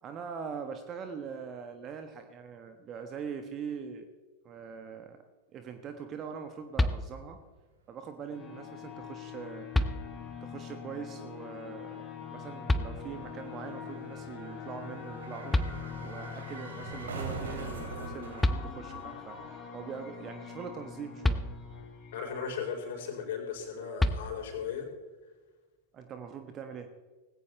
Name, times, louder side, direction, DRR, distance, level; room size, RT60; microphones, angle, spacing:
voice 1, 0.0-4.1 4.4-5.2 5.5-7.4 7.9-9.7 10.4-15.6 16.0-21.4 25.9-26.9, right 6 dB, 30° right, 7 dB, 1.3 m, -42 dB
sound 1, 6.7-7.5 9.0-9.1 9.7-10.5 12.7-13.4 15.2-15.3 15.5-16.3 18.0-18.1 18.4-19.2 21.2-22.0 24.0-24.8, left 1 dB, 5° left, 0.8 m, -30 dB
sound 2, 8.3-23.6, left 7 dB, 30° left, 4.1 m, -44 dB
sound 3, 9.5-19.8 20.1-20.2, right 4 dB, 65° right, 2.8 m, -45 dB
voice 2, 22.1-24.9, left 6 dB, 55° left, 1 dB, 4.3 m, -36 dB
19.0 x 17.0 x 3.3 m, 1.3 s
figure-of-eight pair, 90°, 0 cm